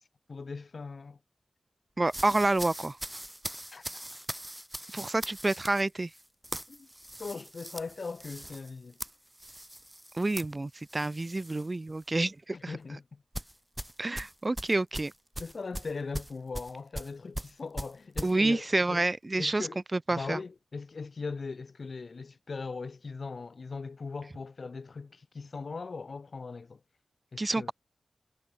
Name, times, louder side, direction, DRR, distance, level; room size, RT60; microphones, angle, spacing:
voice 1, 0.3-1.2 3.7-3.8 6.7-6.9 7.2-9.0 12.5-13.2 15.4-19.0 19.4-19.8 20.1-26.8 27.3-27.7, left 4 dB, 65° left, 3.8 m, -40 dB
voice 2, 2.0-3.0 4.9-6.1 10.1-12.7 14.0-15.1 18.2-20.4 27.4-27.7, right 2 dB, 35° right, 0.7 m, -28 dB
sound 1, 2.1-11.7 12.0-12.3 13.3-18.3, right 1 dB, 10° right, 7.1 m, -41 dB
cardioid pair, 45°, 0 cm